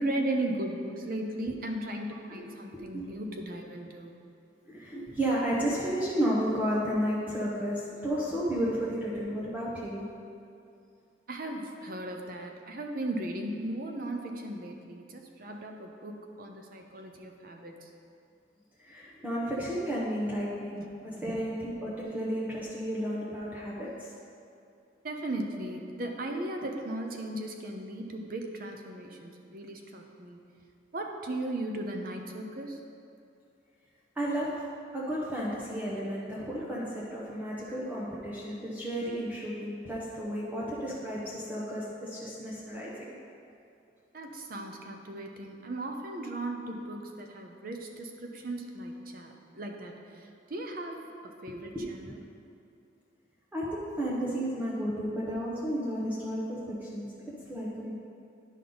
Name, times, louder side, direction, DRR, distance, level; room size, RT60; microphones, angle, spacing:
voice 1, 0.0-4.2 11.3-17.9 21.3-21.4 25.0-30.4 30.9-32.8 44.1-52.2, right 1 dB, 50° right, 3 dB, 0.7 m, -37 dB
voice 2, 2.7-3.1 4.7-10.1 18.8-24.1 34.2-34.6 34.9-43.1 51.7-52.2 53.5-57.9, equal, 10° right, -7 dB, 0.9 m, -32 dB
10.5 x 5.4 x 3.9 m, 2.5 s
head